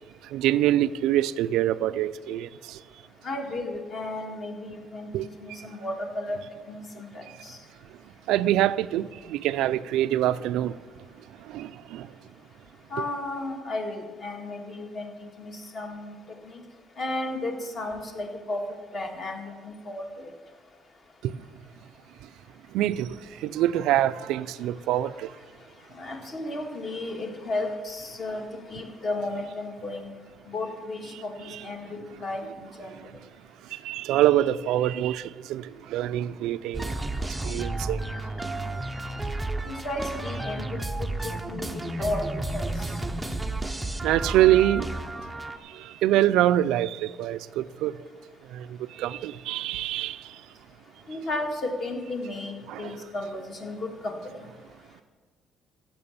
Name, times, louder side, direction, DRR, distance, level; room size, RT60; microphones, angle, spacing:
voice 1, 0.2-2.8 5.1-5.3 7.3-7.4 8.3-10.7 11.4-12.1 21.2-21.3 22.7-25.3 31.5-31.6 33.7-36.9 37.4-38.1 44.0-44.9 45.6-47.9 48.5-50.4 52.7-53.0, right 13 dB, 85° right, 0.4 m, -25 dB
voice 2, 3.2-6.4 6.7-7.6 12.9-15.1 15.4-16.2 16.4-16.6 17.0-18.6 18.9-20.3 25.9-28.4 28.7-30.1 30.5-33.0 39.7-42.2 42.5-42.9 51.1-54.5, left 2 dB, 35° left, 1.7 m, -34 dB
sound 1, 36.7-45.6, right 2 dB, 5° right, 0.6 m, -32 dB
15.5 x 6.0 x 7.1 m
cardioid pair, 155°, 0 cm